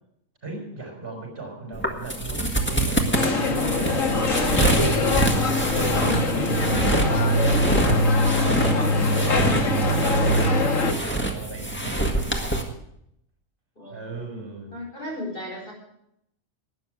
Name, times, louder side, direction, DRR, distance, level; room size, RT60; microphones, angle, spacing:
voice 1, 0.4-8.1 8.4-12.0 13.9-14.8, right 2 dB, 45° right, 1 dB, 5.4 m, -37 dB
sound 1, 1.7-12.6, right 1 dB, 10° left, 1.7 m, -26 dB
sound 2, 3.1-10.9, left 1 dB, 90° left, 1.9 m, -22 dB
voice 2, 13.8-14.2 14.7-15.7, left 1 dB, 45° left, -1 dB, 4.8 m, -35 dB
12.5 x 9.6 x 7.9 m, 0.76 s
omnidirectional pair, 1.3 m